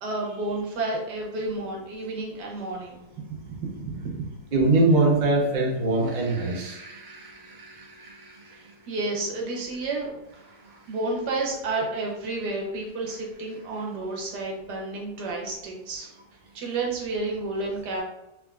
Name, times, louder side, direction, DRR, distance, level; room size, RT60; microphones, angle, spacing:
voice 1, 0.0-3.0 3.4-4.3 8.5-16.1 16.5-18.0, right 2 dB, 65° right, -1 dB, 1.4 m, -31 dB
voice 2, 4.5-8.3, right 2 dB, 45° right, -2 dB, 0.5 m, -23 dB
3.5 x 3.4 x 2.4 m, 0.92 s
omnidirectional pair, 2.0 m